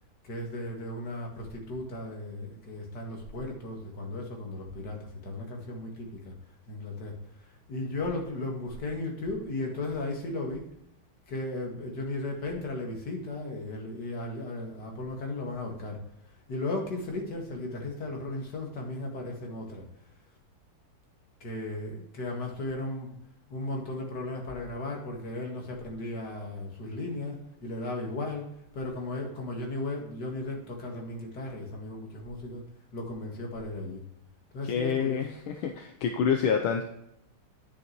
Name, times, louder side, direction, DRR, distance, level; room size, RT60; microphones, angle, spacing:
voice 1, 0.2-10.7 11.3-20.2 21.4-23.2 23.5-32.6 32.9-34.0 34.5-35.2, left 2 dB, 50° left, 0 dB, 2.5 m, -36 dB
voice 2, 34.6-35.3 35.6-36.8, left 7 dB, 75° left, 4 dB, 1.6 m, -27 dB
10.0 x 6.8 x 3.0 m, 0.79 s
omnidirectional pair, 2.3 m